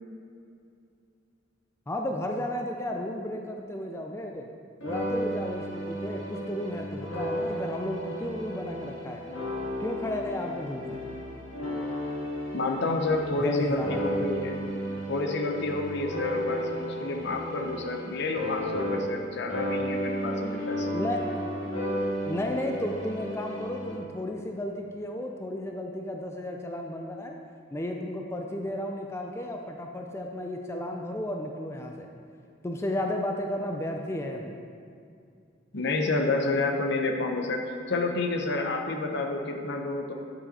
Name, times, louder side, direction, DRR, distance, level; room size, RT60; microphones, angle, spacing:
voice 1, 1.9-4.5 4.8-9.2 9.8-11.1 13.4-14.0 20.9-21.2 22.3-27.3 27.7-32.1 32.6-34.6, left 1 dB, 15° left, 2 dB, 0.4 m, -33 dB
sound 1, 4.8-19.2 19.5-23.9, equal, 85° left, 1.9 m, -33 dB
voice 2, 12.5-14.6 15.1-21.0 35.7-40.1, left 2 dB, 60° left, 3 dB, 0.8 m, -29 dB
9.6 x 5.5 x 4.2 m, 2.4 s
head